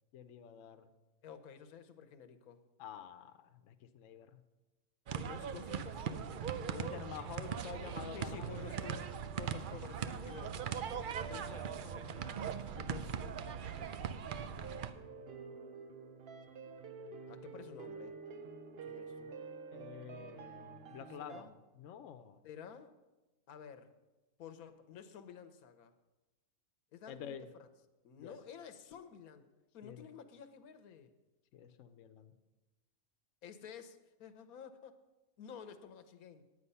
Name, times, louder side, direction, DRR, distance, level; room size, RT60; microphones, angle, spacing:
voice 1, 0.1-0.9 2.8-4.4 6.7-8.6 19.7-22.4 27.1-27.5 28.2-28.4 29.8-30.1 31.5-32.3, left 8 dB, 65° left, 8 dB, 1.0 m, -49 dB
voice 2, 1.2-2.6 5.2-6.3 8.1-9.1 9.4-10.6 11.3-13.7 17.3-18.2 18.8-19.4 20.9-21.5 22.4-22.9 23.5-23.9 24.4-25.9 26.9-27.7 28.0-29.4 29.7-31.1 33.4-35.0 35.4-36.4, left 7 dB, 85° left, 9 dB, 1.3 m, -52 dB
sound 1, 5.1-14.9, right 7 dB, 70° right, 0.4 m, -40 dB
sound 2, 7.9-21.4, right 5 dB, 55° right, 0.8 m, -50 dB
9.8 x 9.1 x 5.5 m, 1.1 s
omnidirectional pair, 1.5 m